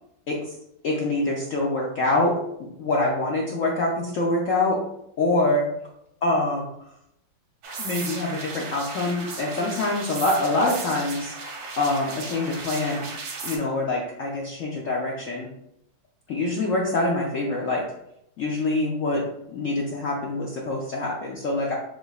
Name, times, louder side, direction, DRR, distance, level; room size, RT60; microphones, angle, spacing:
voice 1, 0.8-2.3 2.8-4.8 5.2-5.7 6.2-6.7 7.8-11.3 11.8-13.1 13.4-15.5 16.3-17.8 18.4-19.2 19.5-21.7, left 2 dB, 70° left, -3 dB, 0.7 m, -25 dB
sound 1, 7.6-13.6, right 3 dB, 85° right, 1.7 m, -35 dB
5.0 x 3.8 x 2.3 m, 0.78 s
omnidirectional pair, 2.1 m